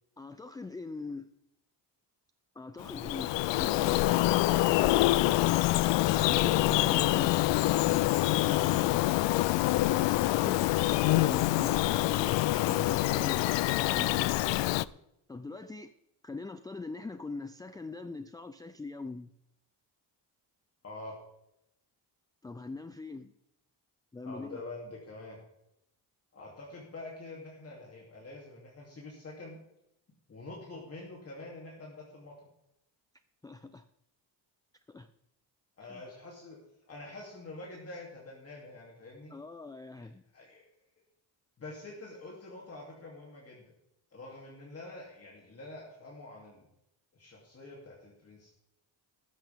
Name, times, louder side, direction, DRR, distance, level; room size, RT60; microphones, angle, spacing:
voice 1, 0.2-1.3 2.6-5.6 6.3-7.4 9.9-12.4 12.7-13.5 13.8-14.4 15.3-15.9 16.2-19.3 22.4-23.3 24.1-24.6 33.4-33.8 34.9-35.1 35.8-36.0 39.3-40.2, left 3 dB, 10° left, 10 dB, 0.3 m, -42 dB
Bird vocalization bird call bird song, 2.8-14.8, left 17 dB, 90° left, 0.5 m, -26 dB
voice 2, 20.8-21.2 24.2-25.4 26.3-29.6 30.3-32.3 35.8-36.6 36.9-39.3 40.0-40.1 40.3-40.6 41.6-43.6 44.1-46.7 47.1-48.5, left 2 dB, 35° left, -3 dB, 3.0 m, -46 dB
14.5 x 13.5 x 3.6 m, 0.82 s
cardioid pair, 155°, 43 cm